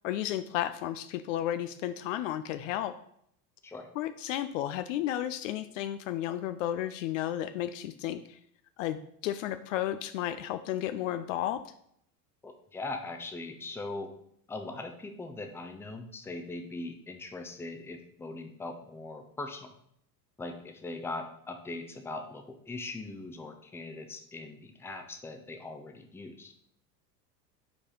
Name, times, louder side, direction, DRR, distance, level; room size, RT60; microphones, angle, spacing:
voice 1, 0.0-2.9 4.0-8.4 8.8-11.7, left 12 dB, 50° left, 11 dB, 0.5 m, -33 dB
voice 2, 12.4-14.1 14.5-19.7 20.4-26.5, left 2 dB, 5° left, 5 dB, 0.6 m, -40 dB
5.1 x 4.7 x 5.2 m, 0.69 s
figure-of-eight pair, 80°, 49 cm